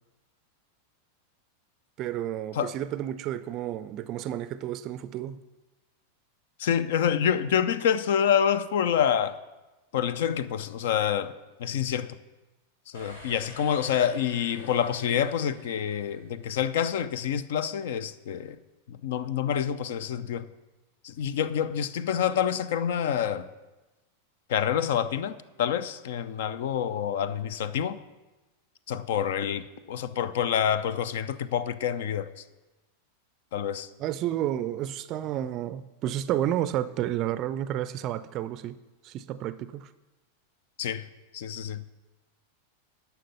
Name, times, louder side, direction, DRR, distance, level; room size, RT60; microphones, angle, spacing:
voice 1, 2.0-5.4 34.0-38.8 39.0-39.9, right 12 dB, 35° right, 0.4 m, -31 dB
voice 2, 6.6-9.4 9.9-11.3 11.6-12.2 12.9-18.6 18.9-20.5 21.0-23.5 24.5-28.0 28.9-32.3 33.5-33.9 40.8-41.0 41.3-41.8, left 9 dB, 55° left, 0.5 m, -27 dB
sound 1, 12.9-16.8, equal, 70° left, 3.7 m, -48 dB
11.5 x 5.8 x 6.8 m
figure-of-eight pair, 90°, 0 cm